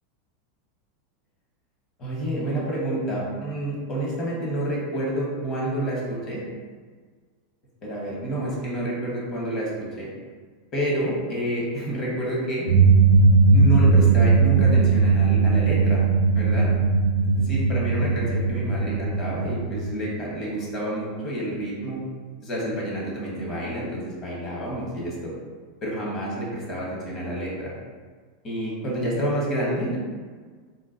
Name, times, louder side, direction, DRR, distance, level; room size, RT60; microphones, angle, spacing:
voice 1, 2.0-6.4 7.8-9.7 10.0-10.1 10.7-12.7 13.5-16.0 16.3-16.7 17.2-22.0 22.4-25.3 25.8-27.7 28.4-30.0, right 1 dB, 35° left, -4 dB, 1.1 m, -29 dB
sound 1, 12.7-19.9, right 4 dB, 70° right, 0.6 m, -18 dB
3.8 x 2.2 x 2.5 m, 1.5 s
supercardioid pair, 135°, 0 cm